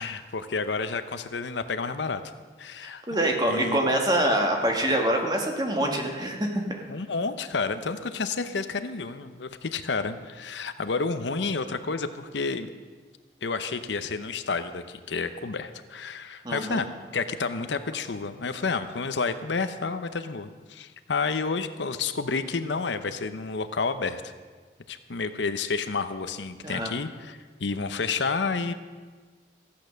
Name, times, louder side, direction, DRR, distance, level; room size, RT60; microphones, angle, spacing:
voice 1, 0.0-2.2 2.6-3.0 3.4-3.8 6.9-12.7 13.4-16.9 17.1-24.3 24.9-28.7, left 4 dB, 85° left, 10 dB, 0.7 m, -30 dB
voice 2, 2.8-6.6 16.4-16.8 26.6-26.9, right 1 dB, 20° right, 2 dB, 1.5 m, -25 dB
15.0 x 8.7 x 6.4 m, 1.4 s
head